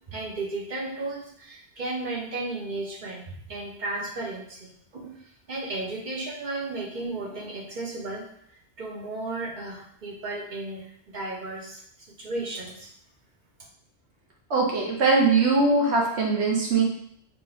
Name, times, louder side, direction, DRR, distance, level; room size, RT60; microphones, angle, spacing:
voice 1, 0.1-11.8 12.2-12.9, right 2 dB, 45° right, -2 dB, 0.9 m, -34 dB
voice 2, 14.5-16.8, right 3 dB, 70° right, -1 dB, 1.2 m, -21 dB
4.1 x 2.9 x 3.5 m, 0.70 s
omnidirectional pair, 1.2 m